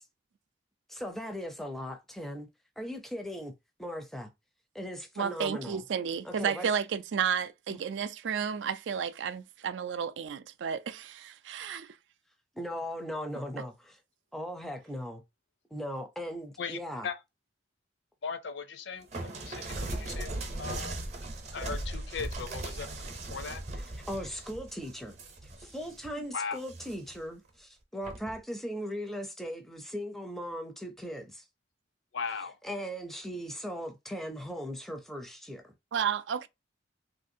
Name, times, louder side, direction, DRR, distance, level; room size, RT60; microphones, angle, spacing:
voice 1, 0.9-2.5 2.8-4.3 4.7-5.8 6.2-6.7 7.7-7.8 12.6-14.0 14.3-15.2 15.7-17.1 23.8-31.5 32.6-35.7, equal, ahead, 0.4 m, -38 dB
voice 2, 5.2-12.0 35.9-36.5, right 7 dB, 75° right, 0.4 m, -32 dB
voice 3, 16.6-17.2 18.2-21.1 21.5-22.9 23.1-23.6 26.3-26.6 32.1-32.6, left 5 dB, 70° left, 0.5 m, -38 dB
sound 1, 19.1-26.1 26.6-27.2 28.1-28.4, right 2 dB, 35° right, 0.7 m, -38 dB
3.2 x 2.6 x 2.6 m
head